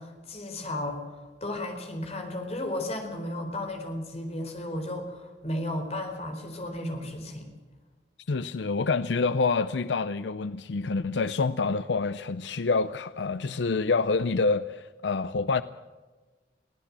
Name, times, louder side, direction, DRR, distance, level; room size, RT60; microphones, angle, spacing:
voice 1, 0.0-7.5, left 1 dB, 35° left, 4.2 m, -34 dB
voice 2, 8.3-15.6, left 4 dB, 75° left, 0.6 m, -27 dB
23.0 x 16.5 x 7.6 m
head